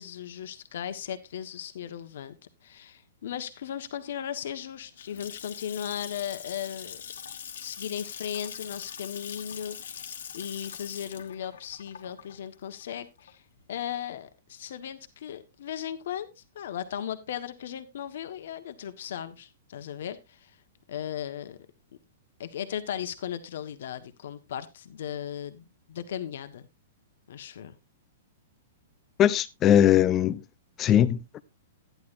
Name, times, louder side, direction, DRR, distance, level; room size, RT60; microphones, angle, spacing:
voice 1, 0.0-2.4 2.6-7.0 7.6-10.1 10.3-13.4 13.7-20.6 20.9-21.6 22.4-26.7 27.3-27.7, left 9 dB, 60° left, 1.3 m, -37 dB
Water tap faucet / Sink (filling or washing) / Splash splatter, 5.0-13.6, left 8 dB, 85° left, 1.6 m, -42 dB
voice 2, 29.2-30.4 30.8-31.2, left 10 dB, 20° left, 0.5 m, -20 dB
12.0 x 10.5 x 2.6 m
hypercardioid pair, 165°, 0 cm